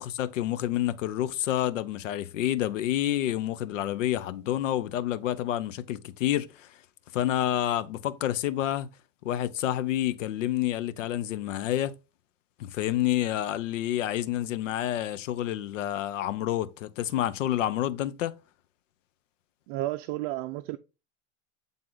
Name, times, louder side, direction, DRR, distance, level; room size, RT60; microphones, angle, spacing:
voice 1, 0.0-6.7 7.1-8.9 9.2-11.9 12.6-18.4, left 12 dB, 85° left, 0.8 m, -28 dB
voice 2, 19.7-20.8, right 16 dB, 55° right, 0.6 m, -32 dB
9.0 x 3.7 x 3.9 m
supercardioid pair, 125°, 37 cm